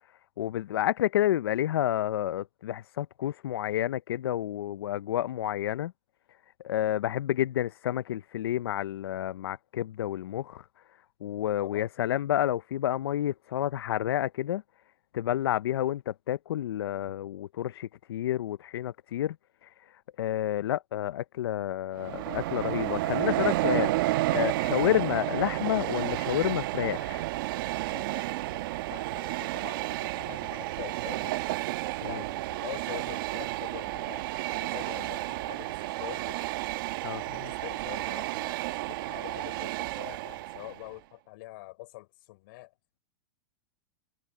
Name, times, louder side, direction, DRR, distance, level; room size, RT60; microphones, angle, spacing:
voice 1, 0.4-5.9 6.6-10.7 11.2-14.6 15.1-19.4 19.6-27.2 32.0-32.2 37.0-37.2, left 12 dB, 90° left, 0.5 m, -30 dB
voice 2, 11.6-11.9 27.9-31.5 32.1-34.3 34.6-36.4 37.3-38.6 38.9-42.7, left 21 dB, 60° left, 5.4 m, -45 dB
Train, 22.0-40.9, right 18 dB, 65° right, 1.1 m, -31 dB
supercardioid pair, 135°, 12 cm